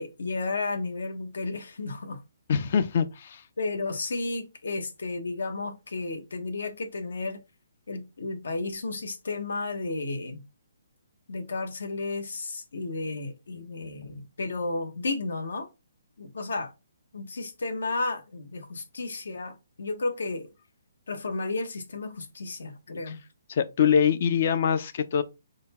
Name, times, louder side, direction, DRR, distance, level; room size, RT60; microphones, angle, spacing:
voice 1, 0.0-2.2 3.6-7.4 7.9-10.4 11.3-15.7 16.2-16.7 17.1-20.5 21.1-23.2, left 3 dB, 80° left, 0.9 m, -33 dB
voice 2, 2.5-3.4 23.5-25.2, left 7 dB, 40° left, 0.4 m, -24 dB
3.9 x 2.1 x 4.1 m
hypercardioid pair, 170°, 0 cm